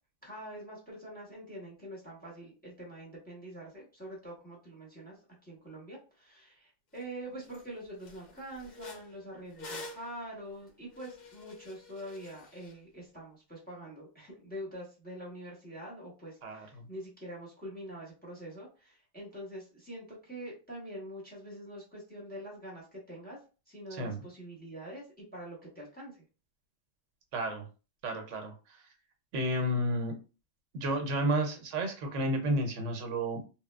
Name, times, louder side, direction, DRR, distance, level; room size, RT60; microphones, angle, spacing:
voice 1, 0.2-23.4 23.7-26.2, right 1 dB, 10° left, -4 dB, 0.8 m, -45 dB
sound 1, 7.0-7.1 7.4-7.6 8.0-12.7, left 2 dB, 50° left, 0.6 m, -48 dB
voice 2, 16.4-16.9 23.9-24.2 27.3-27.7 28.0-28.8 29.3-30.1 30.7-33.4, right 1 dB, 80° right, 4 dB, 1.0 m, -31 dB
3.0 x 2.0 x 2.2 m, 0.33 s
omnidirectional pair, 1.3 m